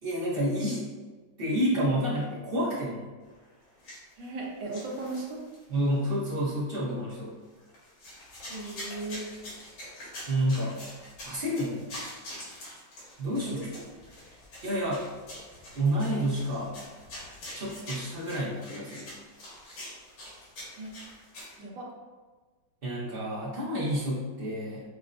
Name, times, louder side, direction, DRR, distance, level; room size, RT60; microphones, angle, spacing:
voice 1, 0.0-0.8 1.4-3.1 5.7-7.3 10.3-10.8 11.2-11.9 13.2-13.6 14.6-15.0 15.7-16.7 17.5-19.1 22.8-24.8, equal, 45° right, -7 dB, 0.7 m, -29 dB
sound 1, 3.7-4.4 4.7-5.7 6.3-6.4 7.6-21.6, left 1 dB, 80° left, 2.1 m, -45 dB
voice 2, 4.2-5.4 8.5-9.3 13.3-13.7 20.8-20.9 21.6-21.9, right 2 dB, 70° right, -2 dB, 1.4 m, -37 dB
6.0 x 2.2 x 2.5 m, 1.3 s
omnidirectional pair, 2.1 m